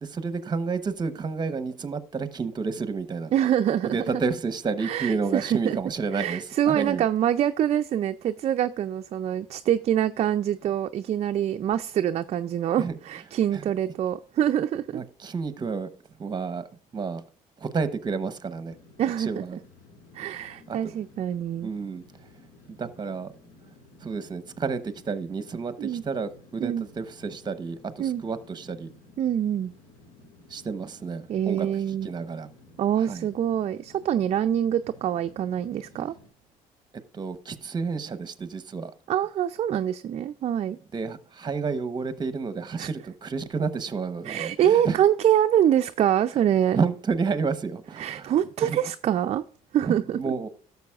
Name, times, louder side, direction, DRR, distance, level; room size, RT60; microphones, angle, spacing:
voice 1, 0.0-3.3 3.9-7.1 12.8-13.0 13.5-13.6 14.9-15.9 16.2-16.7 16.9-17.2 17.6-18.8 19.2-19.6 20.7-20.9 21.6-22.0 22.7-23.3 24.0-28.9 30.5-32.5 32.9-33.3 37.1-38.9 40.9-45.0 46.7-48.3 48.6-48.8 49.8-50.5, right 5 dB, 30° right, 0.9 m, -30 dB
voice 2, 3.3-3.9 4.8-5.8 6.1-15.0 19.0-19.3 20.1-21.7 25.8-26.0 26.6-26.8 28.0-28.2 29.2-29.7 31.3-32.1 32.8-36.1 39.1-40.8 42.8-42.9 44.3-46.8 48.0-49.4 49.7-50.2, right 10 dB, 45° right, 0.4 m, -25 dB
sound 1, 18.5-36.3, left 2 dB, 75° left, 1.9 m, -54 dB
12.5 x 6.9 x 2.4 m
cardioid pair, 90°, 15 cm